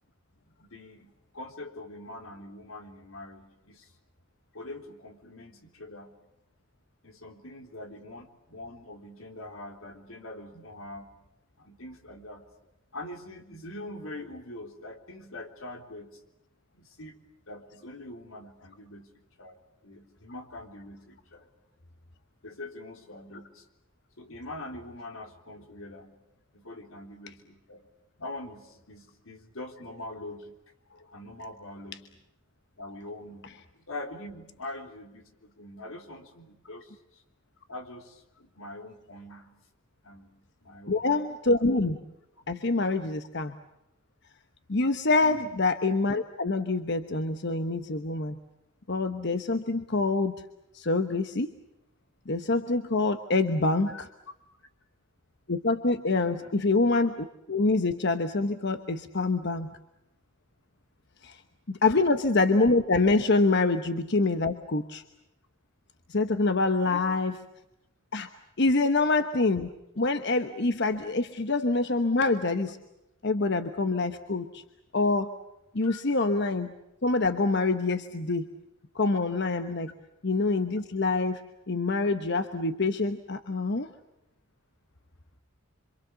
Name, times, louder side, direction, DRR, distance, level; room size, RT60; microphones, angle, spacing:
voice 1, 0.6-3.9 4.5-6.2 7.0-11.1 11.6-12.4 12.9-16.2 16.7-17.2 17.5-19.1 19.4-21.5 22.4-23.7 24.2-26.2 26.5-27.9 28.2-30.6 30.9-32.2 32.8-37.2 37.7-39.5 40.0-41.0 42.8-43.1 45.2-45.5 53.9-54.0 56.4-56.5 61.8-62.0 66.8-67.1 68.7-68.8 75.8-76.0, left 1 dB, 85° left, 4 dB, 3.7 m, -43 dB
voice 2, 40.9-42.0 42.5-43.6 44.7-48.3 48.9-50.3 50.7-51.5 52.3-54.1 55.5-59.7 61.2-61.4 61.7-65.0 66.1-67.3 68.1-68.3 68.6-69.7 70.0-72.8 73.2-74.6 74.9-75.3 75.7-76.7 77.0-78.5 78.9-79.9 80.2-81.4 81.7-83.9, left 3 dB, 55° left, 8 dB, 1.1 m, -26 dB
27.0 x 26.5 x 7.0 m, 0.89 s
head